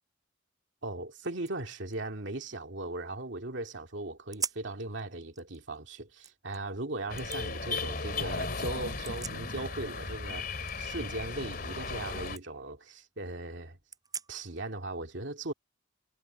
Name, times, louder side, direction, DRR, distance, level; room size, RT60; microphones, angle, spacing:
sound 1, 0.8-0.9 1.2-3.4 3.8-3.9 4.3-4.8 5.2-6.6 7.2-7.4 8.8-9.9 10.2-12.0 12.3-12.4 12.9-13.0 13.9-14.6, right 6 dB, 20° right, 7.9 m, -43 dB
voice 1, 0.8-13.8 14.3-15.5, right 2 dB, 70° right, 2.3 m, -38 dB
sound 2, 7.1-12.4, left 3 dB, 50° left, 3.0 m, -36 dB
head